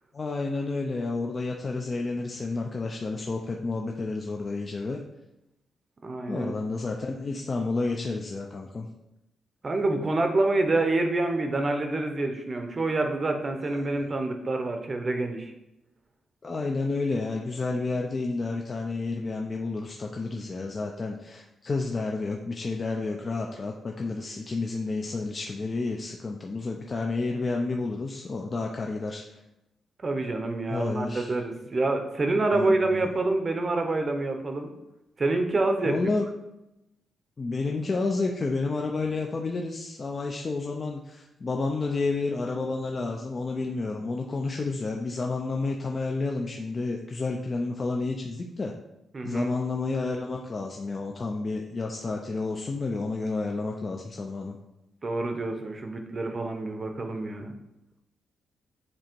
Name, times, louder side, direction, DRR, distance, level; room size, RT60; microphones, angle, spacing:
voice 1, 0.1-5.0 6.3-8.9 13.7-13.9 16.4-29.2 30.7-31.3 32.5-33.1 35.8-36.3 37.4-48.7 49.2-54.6, left 3 dB, 30° left, 1 dB, 0.4 m, -30 dB
voice 2, 6.0-6.5 9.6-15.5 30.0-34.7 35.2-35.9 49.1-49.5 55.0-57.5, right 2 dB, 30° right, 5 dB, 0.7 m, -27 dB
7.5 x 2.8 x 4.4 m, 0.90 s
cardioid pair, 145°, 0 cm